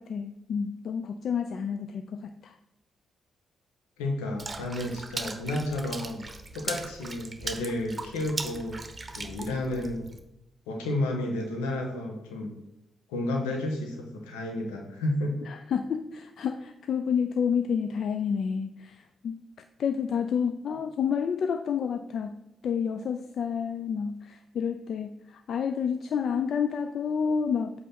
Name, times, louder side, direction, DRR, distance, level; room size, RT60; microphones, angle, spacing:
voice 1, 0.0-2.5 15.5-19.0 19.2-19.3 19.8-22.4 22.6-25.2 25.5-27.7, left 7 dB, 60° left, 8 dB, 0.4 m, -29 dB
voice 2, 4.0-6.3 6.5-8.8 9.1-10.0 10.7-12.5 13.1-15.4, left 1 dB, 80° left, 2 dB, 1.3 m, -31 dB
Water / Splash splatter, 4.4-10.2, right 3 dB, 30° right, 1.0 m, -38 dB
8.2 x 3.2 x 5.9 m, 0.91 s
hypercardioid pair, 40°, 0 cm